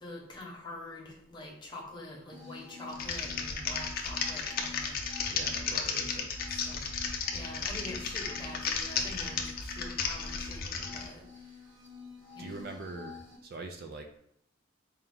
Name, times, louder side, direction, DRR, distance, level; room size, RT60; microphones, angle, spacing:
voice 1, 0.0-5.0 5.6-6.1 6.5-11.2 12.3-12.6, left 1 dB, 25° left, -2 dB, 0.9 m, -45 dB
sound 1, 2.3-13.4, left 5 dB, 85° right, 1.2 m, -48 dB
Typing, 2.9-11.1, left 5 dB, 50° left, 0.5 m, -34 dB
voice 2, 5.3-6.4 12.4-14.1, right 3 dB, 50° right, 5 dB, 0.3 m, -43 dB
4.3 x 2.3 x 3.7 m, 0.71 s
head